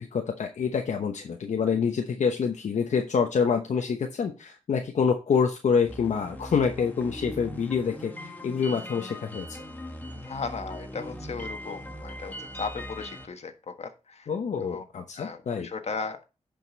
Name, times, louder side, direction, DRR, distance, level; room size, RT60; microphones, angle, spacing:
voice 1, 0.0-9.5 14.3-15.7, left 6 dB, 75° left, 3 dB, 1.0 m, -27 dB
sound 1, 5.9-13.2, equal, 15° left, 1.6 m, -40 dB
voice 2, 10.1-14.3 14.6-14.8 15.1-16.2, left 4 dB, 60° left, 7 dB, 1.5 m, -36 dB
11.0 x 5.3 x 4.1 m, 0.30 s
wide cardioid pair, 90°, 12 cm